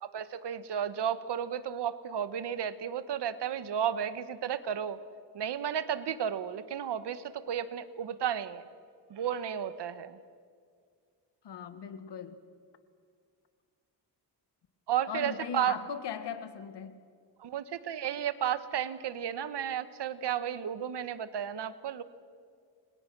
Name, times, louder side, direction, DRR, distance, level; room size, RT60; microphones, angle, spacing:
voice 1, 0.0-5.0 5.3-8.6 9.1-10.2 14.9-15.8 17.4-22.0, right 9 dB, 75° right, 13 dB, 1.5 m, -33 dB
voice 2, 11.4-12.4 15.1-17.0, left 8 dB, 75° left, 11 dB, 2.0 m, -39 dB
30.0 x 24.5 x 6.2 m, 2.1 s
cardioid pair, 95°, 42 cm